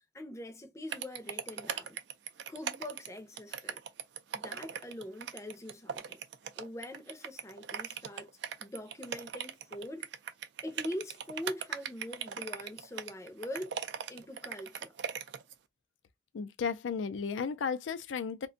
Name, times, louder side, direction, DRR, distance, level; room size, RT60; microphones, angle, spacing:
voice 1, 0.1-2.0 2.5-3.8 4.3-6.2 6.6-8.3 8.6-10.0 10.6-13.7 14.1-14.9, left 1 dB, 15° left, 0.5 m, -43 dB
sound 1, 0.9-15.5, right 8 dB, 65° right, 0.4 m, -39 dB
voice 2, 16.3-18.5, left 6 dB, 85° left, 0.4 m, -34 dB
2.5 x 2.2 x 3.7 m
head